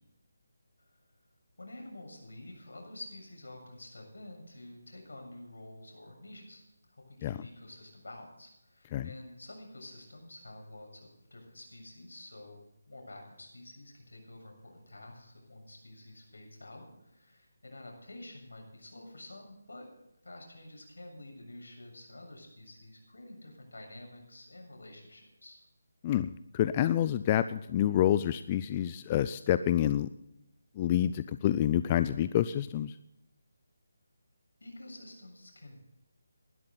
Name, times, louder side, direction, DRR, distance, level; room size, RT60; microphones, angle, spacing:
voice 1, 1.6-6.6 6.9-12.6 12.9-19.9 20.2-25.7 34.6-35.8, left 1 dB, 75° left, 2 dB, 7.2 m, -49 dB
voice 2, 26.0-30.1 30.8-32.9, left 11 dB, 25° left, 13 dB, 0.4 m, -28 dB
19.5 x 12.0 x 4.0 m, 0.88 s
figure-of-eight pair, 155°, 0 cm